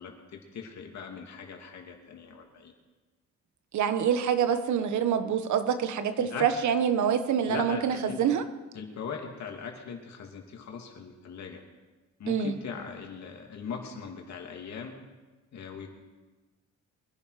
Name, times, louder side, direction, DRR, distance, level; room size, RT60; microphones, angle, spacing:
voice 1, 0.0-2.7 6.2-6.6 7.5-8.4 8.7-11.6 12.2-14.9 15.5-15.9, left 6 dB, 60° left, 2 dB, 2.9 m, -40 dB
voice 2, 3.7-8.4 12.3-12.5, right 8 dB, 75° right, 10 dB, 1.4 m, -26 dB
23.0 x 10.5 x 5.1 m, 1.2 s
cardioid pair, 90°, 30 cm